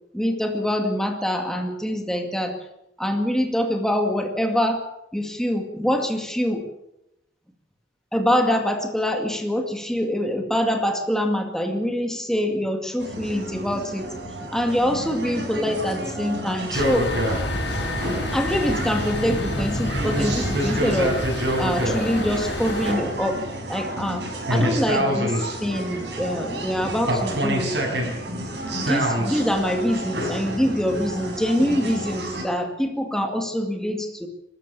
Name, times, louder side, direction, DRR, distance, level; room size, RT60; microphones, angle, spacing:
voice 1, 0.1-2.6 3.0-4.9 5.1-6.6 8.1-14.1 14.5-17.1 18.3-21.2 21.6-23.4 23.7-27.7 28.8-34.3, equal, 5° left, 3 dB, 2.1 m, -24 dB
sound 1, 13.0-32.4, right 1 dB, 65° right, 6.4 m, -28 dB
sound 2, 16.7-22.9, left 1 dB, 85° left, 5.7 m, -29 dB
24.0 x 13.5 x 8.3 m, 0.86 s
head